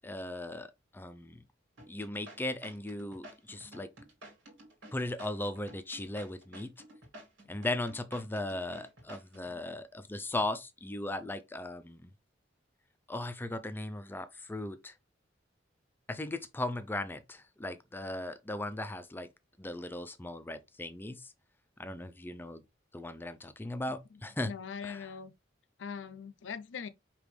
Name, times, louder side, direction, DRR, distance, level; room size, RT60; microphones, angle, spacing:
voice 1, 0.0-1.4 1.9-3.9 4.9-6.7 7.5-12.1 13.1-14.9 16.1-19.3 19.6-21.3 21.8-22.6 22.9-24.5 24.8-25.1, left 1 dB, 10° left, 0.4 m, -37 dB
sound 1, 1.8-9.6, right 1 dB, 80° right, 2.1 m, -52 dB
voice 2, 24.4-25.3 25.8-26.9, left 6 dB, 70° left, 0.5 m, -41 dB
5.2 x 3.0 x 3.2 m
head